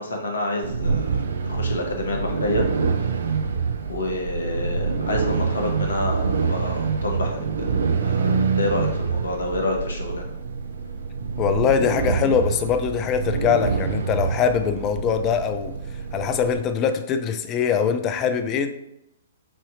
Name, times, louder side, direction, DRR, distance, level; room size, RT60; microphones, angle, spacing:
voice 1, 0.0-2.6 3.9-7.7 8.0-10.2, left 1 dB, 65° left, 2 dB, 0.9 m, -28 dB
sound 1, 0.6-16.6, right 5 dB, 60° right, 0.4 m, -26 dB
voice 2, 11.4-15.7 16.1-18.7, left 7 dB, 25° left, 9 dB, 0.4 m, -22 dB
6.9 x 2.8 x 2.6 m, 0.85 s
figure-of-eight pair, 115°, 0 cm